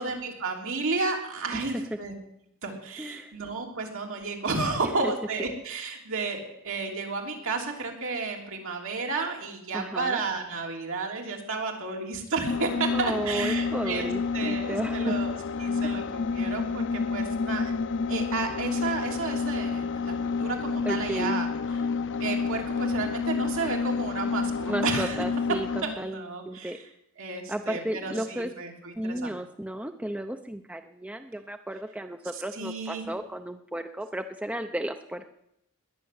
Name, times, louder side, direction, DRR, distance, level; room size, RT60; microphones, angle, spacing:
voice 1, 0.0-2.1 2.6-17.7 18.1-21.5 22.2-25.2 25.8-26.7 27.2-29.3 32.3-33.0, right 3 dB, 65° right, 1 dB, 3.3 m, -32 dB
voice 2, 3.0-3.3 4.8-5.1 9.7-10.2 12.9-15.2 15.8-15.9 20.8-21.4 24.6-26.8 27.5-28.5 29.0-35.3, right 1 dB, 5° right, 7 dB, 0.7 m, -34 dB
sound 1, 12.5-26.0, left 5 dB, 60° left, 0.6 m, -29 dB
20.5 x 6.9 x 9.5 m, 0.78 s
head